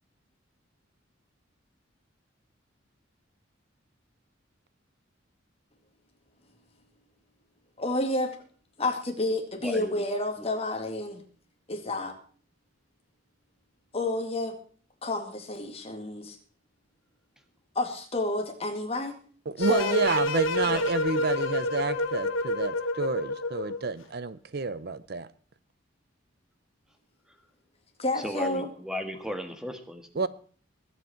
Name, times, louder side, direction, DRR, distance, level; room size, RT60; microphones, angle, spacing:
voice 1, 7.8-8.4 8.8-11.2 11.7-12.2 13.9-14.6 15.0-16.4 17.8-19.2 19.6-20.1 28.0-28.7, left 2 dB, 30° left, 2.3 m, -30 dB
voice 2, 9.6-10.0 10.4-10.5 20.6-20.8 28.1-30.3, equal, 5° right, 1.5 m, -36 dB
voice 3, 19.5-25.3 30.2-30.3, right 4 dB, 55° right, 0.7 m, -29 dB
sound 1, 19.6-23.9, left 2 dB, 85° left, 1.4 m, -28 dB
21.0 x 8.2 x 4.5 m
head